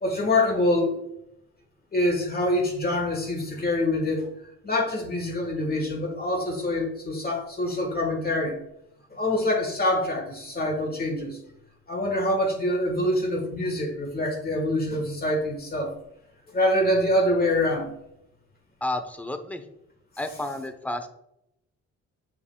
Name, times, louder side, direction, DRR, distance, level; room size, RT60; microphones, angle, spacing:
voice 1, 0.0-0.9 1.9-4.3 4.6-8.6 9.1-11.4 11.9-15.9 16.5-17.9, left 1 dB, 30° left, 1 dB, 1.4 m, -25 dB
voice 2, 18.8-19.6 20.2-21.1, left 1 dB, 5° left, 7 dB, 0.7 m, -31 dB
8.3 x 5.1 x 2.3 m, 0.81 s
cardioid pair, 90°, 30 cm